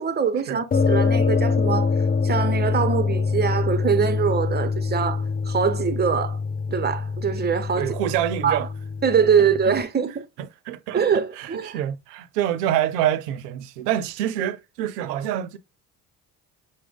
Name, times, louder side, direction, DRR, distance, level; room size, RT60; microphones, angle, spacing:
voice 1, 0.0-1.9 2.2-6.4 6.7-7.9 8.4-8.6 9.0-10.3 10.9-11.8, right 6 dB, 20° right, 0.8 m, -23 dB
sound 1, 0.7-9.8, left 4 dB, 20° left, 0.4 m, -24 dB
voice 2, 7.8-8.7 10.4-11.0 11.4-15.6, right 11 dB, 80° right, 0.5 m, -26 dB
5.9 x 2.1 x 3.5 m
hypercardioid pair, 55°, 48 cm